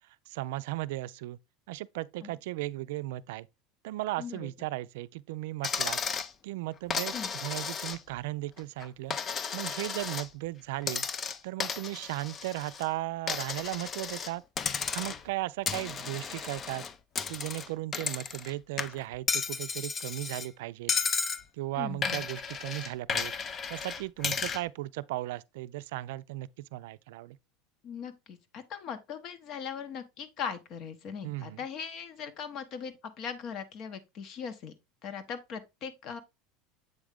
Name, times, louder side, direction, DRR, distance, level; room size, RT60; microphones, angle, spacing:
voice 1, 0.3-1.4 1.7-3.5 3.8-6.0 6.4-9.2 9.5-11.0 11.4-14.4 14.9-16.9 17.3-20.9 21.5-23.3 23.7-27.4 31.2-31.6, right 17 dB, 80° right, 0.3 m, -36 dB
voice 2, 4.2-4.5 7.1-7.3 21.8-22.2 27.8-34.7 35.0-36.2, left 7 dB, 50° left, 1.0 m, -39 dB
Coin (dropping), 5.6-6.3 6.9-8.2 8.6-10.3 10.8-12.9 13.3-14.3 14.6-15.3 15.7-18.5 18.8-20.5 20.9-21.4 22.0-24.6, left 6 dB, 30° left, 0.5 m, -34 dB
7.8 x 3.6 x 3.4 m
supercardioid pair, 115°, 0 cm